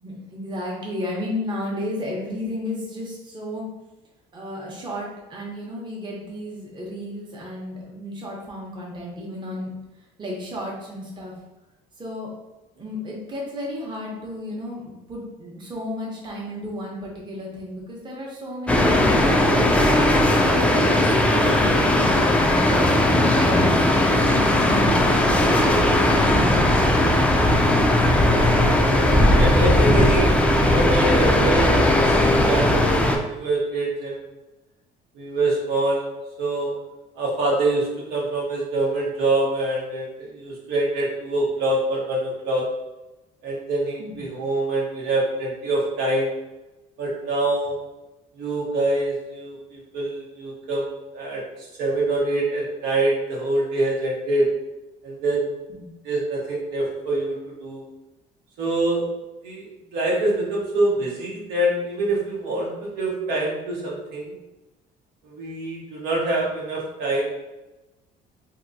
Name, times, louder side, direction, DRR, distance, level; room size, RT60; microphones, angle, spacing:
voice 1, 0.0-3.6 4.3-9.7 10.2-11.3 12.0-12.3 12.8-20.1 20.6-22.2 22.5-27.7 44.0-44.3 55.7-55.9, left 1 dB, 25° right, -3 dB, 0.8 m, -33 dB
sound 1, 18.7-33.2, left 1 dB, 5° left, 0.3 m, -18 dB
voice 2, 29.4-34.2 35.1-36.1 36.4-36.7 37.2-42.7 43.4-46.3 47.0-47.8 48.4-51.4 51.8-54.5 55.0-55.6 56.0-57.8 58.6-59.0 59.4-64.3 65.2-67.2, right 2 dB, 80° right, -4 dB, 1.0 m, -25 dB
2.9 x 2.6 x 2.5 m, 1.0 s
cardioid pair, 110°, 17 cm